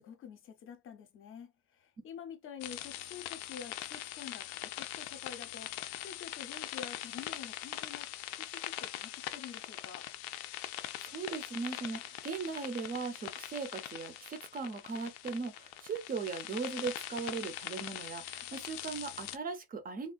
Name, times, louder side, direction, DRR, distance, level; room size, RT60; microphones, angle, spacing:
voice 1, 0.0-10.1, left 7 dB, 35° left, 0.5 m, -48 dB
sound 1, 2.6-19.4, left 14 dB, 90° left, 0.5 m, -42 dB
voice 2, 11.0-20.1, right 4 dB, 25° right, 0.4 m, -38 dB
3.3 x 2.3 x 2.2 m
cardioid pair, 160°, 39 cm